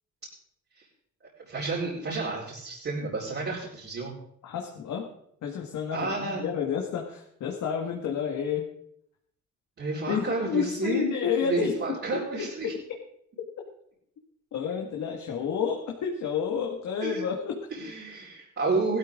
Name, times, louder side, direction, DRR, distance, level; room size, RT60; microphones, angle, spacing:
voice 1, 1.5-4.1 5.9-6.4 9.8-11.1 11.4-12.7 17.0-17.2 17.7-19.0, right 3 dB, 45° right, -6 dB, 4.4 m, -30 dB
voice 2, 4.4-5.1 5.4-8.6 10.1-12.0 12.3-12.7 14.5-17.7, left 7 dB, 70° left, 1 dB, 1.8 m, -30 dB
16.0 x 13.0 x 3.7 m, 0.71 s
cardioid pair, 90°, 30 cm